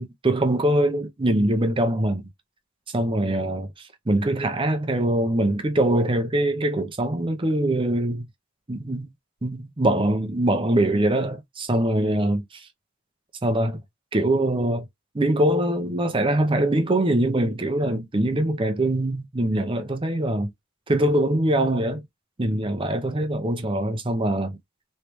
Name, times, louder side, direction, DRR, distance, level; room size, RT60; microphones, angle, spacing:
voice 1, 0.0-2.3 2.9-8.2 8.7-9.1 9.4-12.7 13.4-13.8 14.1-14.9 15.1-20.5 20.9-22.0 22.4-24.6, right 1 dB, 25° right, 0.6 m, -23 dB
3.2 x 3.1 x 3.0 m
head